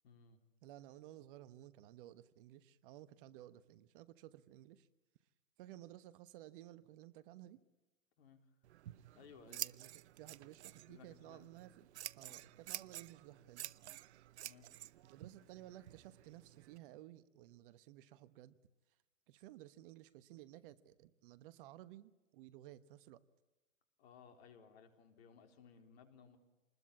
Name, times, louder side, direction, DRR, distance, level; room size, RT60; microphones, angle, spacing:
voice 1, 0.0-0.4 8.2-8.5 9.1-9.7 10.9-11.5 12.3-12.4 14.4-14.7 24.0-26.4, left 6 dB, 55° left, 6 dB, 4.1 m, -60 dB
voice 2, 0.6-4.9 5.6-7.6 9.5-9.9 10.1-11.8 12.1-13.7 15.0-18.6 19.3-23.2, right 14 dB, 45° right, 15 dB, 1.2 m, -56 dB
Scissors, 8.6-16.8, right 13 dB, 60° right, 0.8 m, -50 dB
27.0 x 20.5 x 8.6 m, 1.1 s
hypercardioid pair, 120°, 38 cm